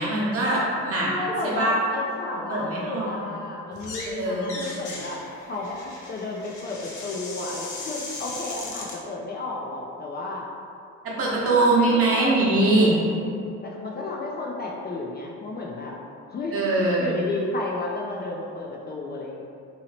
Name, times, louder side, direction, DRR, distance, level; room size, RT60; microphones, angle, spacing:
voice 1, 0.0-1.1 1.6-1.7 2.5-3.1 4.2-4.6 11.0-13.0 16.5-17.2, right 2 dB, 50° right, -5 dB, 0.9 m, -22 dB
voice 2, 1.0-5.2 5.5-10.4 11.2-12.6 13.6-16.0 16.3-16.7 17.0-19.4, left 2 dB, 35° left, -2 dB, 0.4 m, -32 dB
sound 1, 3.7-4.1 4.4-9.0, left 2 dB, 75° left, 0.7 m, -37 dB
2.8 x 2.8 x 2.8 m, 2.5 s
cardioid pair, 90°, 30 cm